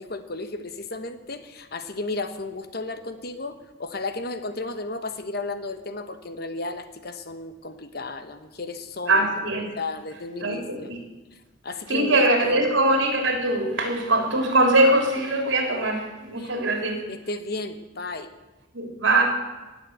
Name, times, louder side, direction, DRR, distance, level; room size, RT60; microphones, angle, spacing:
voice 1, 0.0-9.2 9.8-10.9 11.3-11.4 11.6-12.6 16.4-16.5 17.1-18.3, left 2 dB, 50° left, 9 dB, 1.1 m, -34 dB
voice 2, 9.1-9.7 10.4-11.0 11.9-17.0 18.7-19.2, right 2 dB, 70° right, 2 dB, 3.5 m, -22 dB
18.5 x 7.7 x 8.0 m, 1.2 s
head